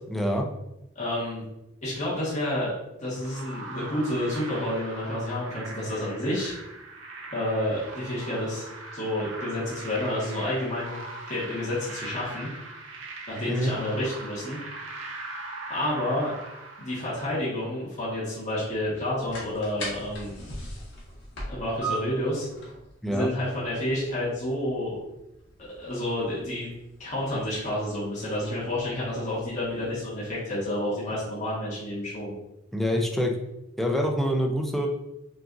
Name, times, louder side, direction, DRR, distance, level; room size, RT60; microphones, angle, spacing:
voice 1, 0.1-0.5 13.5-13.7 23.0-23.3 32.7-33.3 33.8-34.9, equal, ahead, 1 dB, 0.4 m, -25 dB
voice 2, 0.9-1.4 1.8-2.7 3.0-6.5 7.3-8.7 8.9-11.0 11.3-12.5 13.3-14.6 15.7-16.3 16.8-20.4 21.5-22.5 23.1-25.0 25.8-26.7 27.0-32.3, left 1 dB, 40° left, -8 dB, 1.3 m, -29 dB
sound 1, 3.2-17.5, right 2 dB, 70° right, 0.8 m, -41 dB
sound 2, 18.8-30.4, right 1 dB, 65° left, 1.4 m, -42 dB
5.7 x 2.5 x 2.6 m, 0.91 s
head